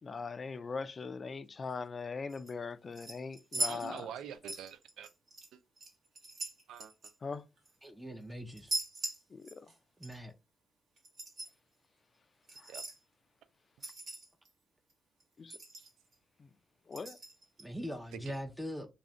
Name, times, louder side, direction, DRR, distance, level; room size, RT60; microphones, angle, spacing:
voice 1, 0.0-4.1 7.2-7.5 9.3-9.7 12.6-12.7 15.4-15.6 16.4-16.5 16.9-17.2, left 4 dB, 45° left, 0.3 m, -41 dB
sound 1, 2.3-2.5 3.0-4.2 4.5-5.5 5.8-7.8 8.5-9.8 10.0-10.2 11.0-11.5 12.5-13.0 13.8-14.5 14.9-15.0 15.2-15.3 15.5-16.1 16.9-17.6 18.3-18.4, right 2 dB, 60° right, 1.0 m, -40 dB
voice 2, 3.6-5.1 5.5-5.6 6.7-7.1 12.7-12.8 15.8-15.9 18.1-18.3, right 9 dB, 75° right, 0.3 m, -46 dB
voice 3, 7.8-8.7 10.0-10.3 17.6-18.9, equal, 10° right, 0.6 m, -41 dB
2.5 x 2.4 x 3.1 m
hypercardioid pair, 45°, 0 cm